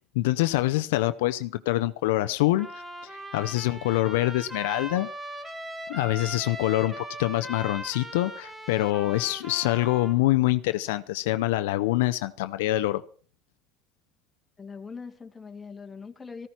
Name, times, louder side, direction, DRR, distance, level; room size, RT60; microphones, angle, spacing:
voice 1, 0.1-2.7 3.0-5.1 5.9-13.0, left 17 dB, 85° left, 11 dB, 0.6 m, -25 dB
Trumpet, 2.6-10.2, equal, 15° right, 2.1 m, -39 dB
voice 2, 14.6-16.5, left 5 dB, 20° left, 4 dB, 2.1 m, -41 dB
14.5 x 14.0 x 4.4 m, 0.43 s
supercardioid pair, 100°, 0 cm